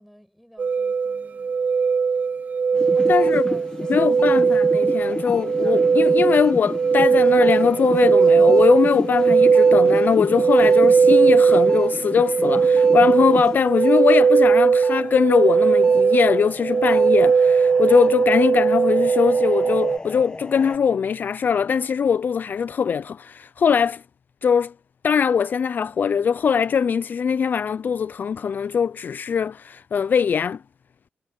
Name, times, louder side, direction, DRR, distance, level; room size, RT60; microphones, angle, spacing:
voice 1, 0.0-1.5 2.7-4.2, equal, ahead, 6.5 m, -49 dB
sound 1, 0.6-20.0, right 5 dB, 45° right, 0.4 m, -18 dB
sound 2, 2.7-14.0 14.4-20.8, left 2 dB, 20° left, 1.2 m, -34 dB
voice 2, 3.1-3.4 3.9-24.0 24.4-24.7 25.0-30.6, left 7 dB, 55° left, 0.3 m, -21 dB
wide cardioid pair, 140°, 4 cm